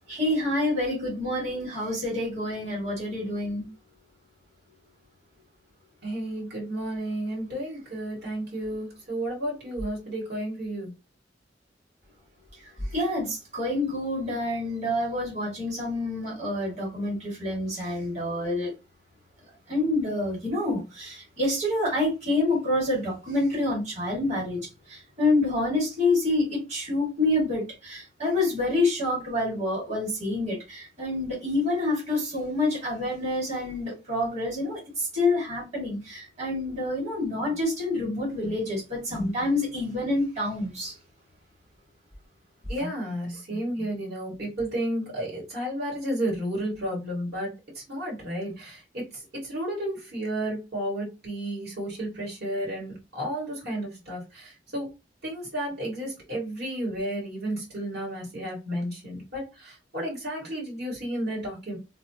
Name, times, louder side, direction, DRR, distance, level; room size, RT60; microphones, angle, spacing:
voice 1, 0.1-3.7 12.9-18.7 19.7-24.6 24.9-40.9, left 2 dB, 40° right, 1.9 m, -27 dB
voice 2, 6.0-10.9 38.5-38.6 39.1-39.3 42.7-54.9 55.2-61.8, right 1 dB, 65° right, 1.9 m, -32 dB
2.9 x 2.8 x 2.8 m
head